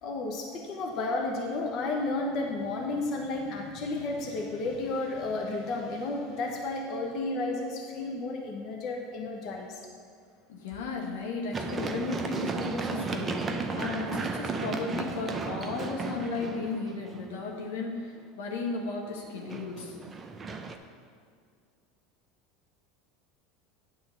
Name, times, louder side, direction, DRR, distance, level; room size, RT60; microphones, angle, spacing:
voice 1, 0.0-9.8, left 2 dB, 50° left, 0 dB, 1.1 m, -32 dB
voice 2, 10.5-13.5 13.7-20.0, left 3 dB, 85° left, 0 dB, 1.4 m, -35 dB
Run, 11.5-17.4 19.2-20.8, right 4 dB, 25° right, 0.7 m, -34 dB
9.2 x 3.8 x 7.1 m, 2.2 s
hypercardioid pair, 100°, 0 cm